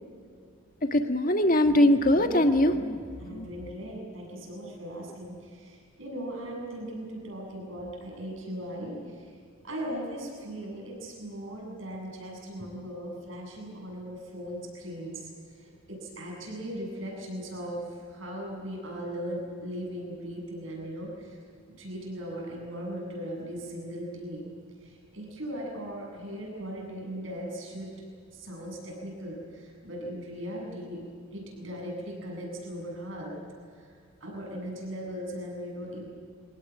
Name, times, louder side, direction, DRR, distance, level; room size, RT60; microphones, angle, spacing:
voice 1, 0.9-3.5, left 1 dB, 40° left, 6 dB, 1.8 m, -22 dB
voice 2, 3.2-9.3 9.6-21.4 21.8-24.5 24.8-27.9 28.3-31.0 31.3-33.4 33.7-33.9 34.2-36.1, equal, 70° right, -1 dB, 7.8 m, -38 dB
24.0 x 19.0 x 9.7 m, 2.2 s
head